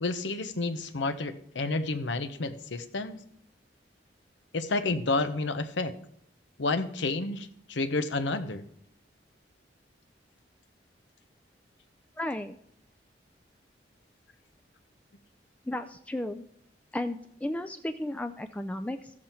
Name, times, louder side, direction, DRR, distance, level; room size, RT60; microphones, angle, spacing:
voice 1, 0.0-3.2 4.5-5.9 6.6-8.6, left 3 dB, 85° left, 11 dB, 0.8 m, -30 dB
voice 2, 12.2-12.6 15.7-16.5 16.9-19.1, left 1 dB, 10° left, 7 dB, 0.3 m, -34 dB
14.0 x 7.4 x 4.4 m, 0.70 s
head